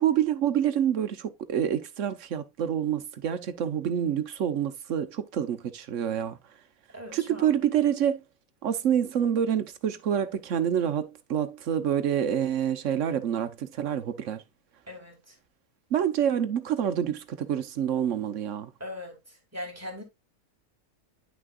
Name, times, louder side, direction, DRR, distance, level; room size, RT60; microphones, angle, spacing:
voice 1, 0.0-6.4 7.1-8.2 8.6-14.4 15.9-18.7, right 9 dB, 65° right, 1.2 m, -27 dB
voice 2, 6.9-7.6 14.9-15.4 18.8-20.0, left 1 dB, 10° right, 2.6 m, -40 dB
10.0 x 6.2 x 2.4 m
omnidirectional pair, 1.5 m